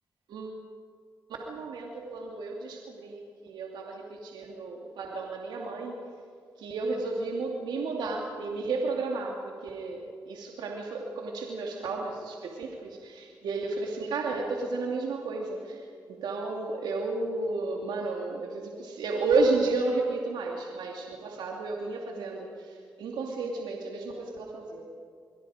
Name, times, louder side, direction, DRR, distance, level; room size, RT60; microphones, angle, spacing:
voice 1, 1.5-6.0 6.6-15.8 16.1-24.9, right 3 dB, 80° right, 0 dB, 2.6 m, -32 dB
29.0 x 22.5 x 5.1 m, 2.3 s
supercardioid pair, 50°, 7 cm